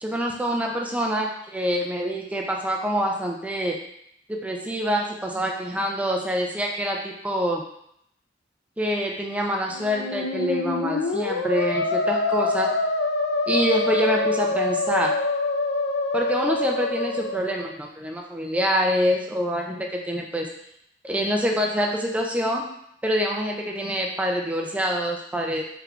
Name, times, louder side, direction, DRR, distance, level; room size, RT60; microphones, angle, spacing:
voice 1, 0.0-3.8 4.3-7.6 8.8-12.7 13.5-15.1 16.1-20.5 21.0-22.6 23.0-25.6, equal, 10° right, 0 dB, 0.4 m, -26 dB
Musical instrument, 9.7-17.7, left 3 dB, 65° left, 0.4 m, -25 dB
3.4 x 3.1 x 2.4 m, 0.73 s
head